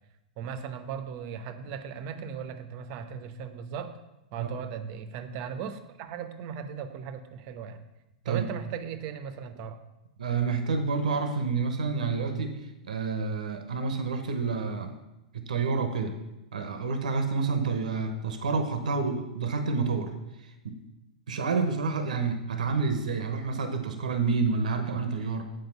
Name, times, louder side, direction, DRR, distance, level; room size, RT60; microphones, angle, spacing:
voice 1, 0.4-3.9 4.3-7.8 8.2-9.8, right 7 dB, 50° right, 9 dB, 0.9 m, -37 dB
voice 2, 10.2-12.6 12.8-14.9 15.3-16.2 16.5-20.1 20.4-20.8 21.3-25.4, right 4 dB, 80° right, 7 dB, 1.0 m, -29 dB
7.9 x 5.0 x 7.1 m, 0.95 s
hypercardioid pair, 105°, 4 cm